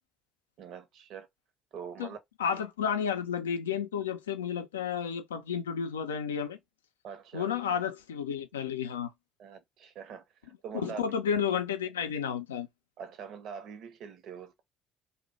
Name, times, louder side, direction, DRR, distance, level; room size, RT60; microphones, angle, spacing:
voice 1, 0.6-1.3 1.7-2.2 2.5-2.6 7.0-7.5 9.4-11.0 13.0-14.6, right 7 dB, 55° right, 0.6 m, -44 dB
voice 2, 2.4-6.6 7.3-9.1 10.8-12.7, left 7 dB, 80° left, 0.4 m, -31 dB
2.6 x 2.0 x 3.0 m
figure-of-eight pair, 50°, 0 cm